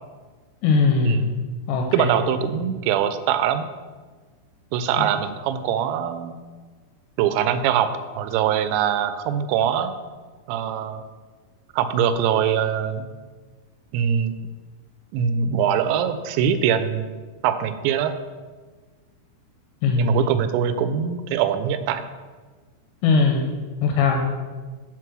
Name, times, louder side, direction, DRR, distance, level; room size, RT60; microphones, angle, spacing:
voice 1, 0.6-1.3 1.7-2.1 5.0-5.1 19.8-20.2 23.0-23.5 23.8-24.3, left 4 dB, 85° left, 2 dB, 2.8 m, -20 dB
voice 2, 1.9-3.7 4.7-6.4 7.2-9.9 10.5-11.0 11.7-13.0 13.9-14.3 15.1-17.1 17.4-18.1 20.0-22.0, right 8 dB, 85° right, 10 dB, 2.8 m, -23 dB
6.3 x 4.6 x 6.0 m, 1.4 s
omnidirectional pair, 5.2 m